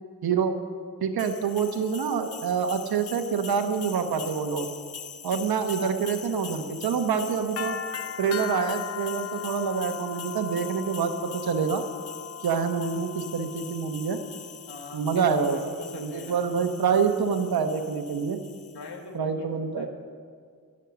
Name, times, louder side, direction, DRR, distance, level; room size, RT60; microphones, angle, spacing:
voice 1, 0.2-0.5 1.0-4.7 5.2-7.8 8.2-11.8 12.4-14.2 14.9-15.6 15.9-18.4 19.1-19.9, right 6 dB, 70° right, 6 dB, 1.1 m, -26 dB
sound 1, 1.2-18.9, left 8 dB, 40° left, 0.7 m, -40 dB
voice 2, 14.7-16.5 18.7-19.9, left 3 dB, 85° left, 3 dB, 1.8 m, -41 dB
19.0 x 6.5 x 7.0 m, 2.1 s
cardioid pair, 65°, 38 cm